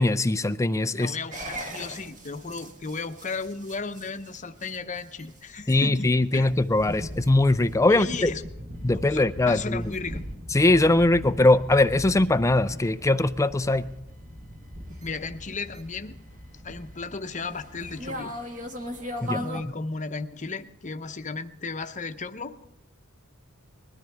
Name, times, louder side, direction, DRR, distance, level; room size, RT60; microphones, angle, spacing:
voice 1, 0.0-1.2 5.7-8.3 8.8-9.8 10.5-13.9 19.2-19.5, left 2 dB, 15° left, 13 dB, 0.4 m, -21 dB
voice 2, 0.9-6.5 7.9-8.4 9.1-10.2 15.0-16.2 16.6-18.3 19.2-22.6, left 4 dB, 35° left, 8 dB, 0.9 m, -35 dB
sound 1, 1.3-19.6, equal, 35° right, 1.7 m, -39 dB
21.0 x 13.5 x 3.5 m, 0.90 s
head